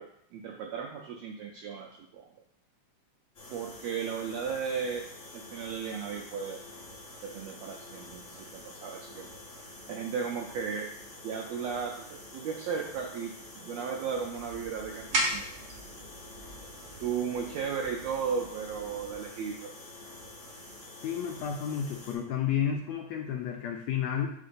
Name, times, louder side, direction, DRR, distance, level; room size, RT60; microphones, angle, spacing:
voice 1, 0.0-2.3 3.5-5.1 5.3-6.6 7.2-9.3 9.9-10.9 11.2-15.4 17.0-19.7, right 6 dB, 80° right, 1 dB, 1.5 m, -35 dB
sound 1, 3.3-22.1, left 2 dB, 50° left, 0.9 m, -48 dB
sound 2, 14.2-19.2, right 1 dB, 60° right, 1.4 m, -37 dB
voice 2, 21.0-24.3, left 8 dB, 80° left, 2 dB, 1.6 m, -31 dB
10.5 x 3.8 x 2.5 m, 0.72 s
omnidirectional pair, 3.5 m